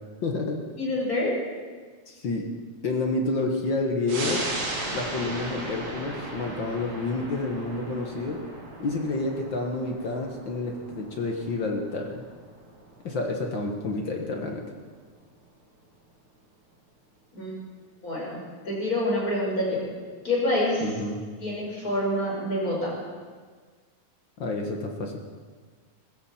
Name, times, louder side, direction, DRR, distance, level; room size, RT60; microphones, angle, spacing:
voice 1, 0.2-0.6 2.1-2.4 2.8-4.4 4.9-8.4 8.8-12.2 13.0-14.7 20.8-21.2 24.4-25.2, left 2 dB, 50° left, 2 dB, 1.5 m, -29 dB
voice 2, 0.8-1.3 17.3-17.5 18.0-18.4 18.6-19.8 20.2-20.9 21.4-22.9, left 1 dB, 25° left, -3 dB, 5.2 m, -26 dB
sound 1, 4.1-15.1 15.4-15.5, right 2 dB, 70° right, 4.0 m, -37 dB
20.0 x 15.5 x 4.3 m, 1.5 s
omnidirectional pair, 3.5 m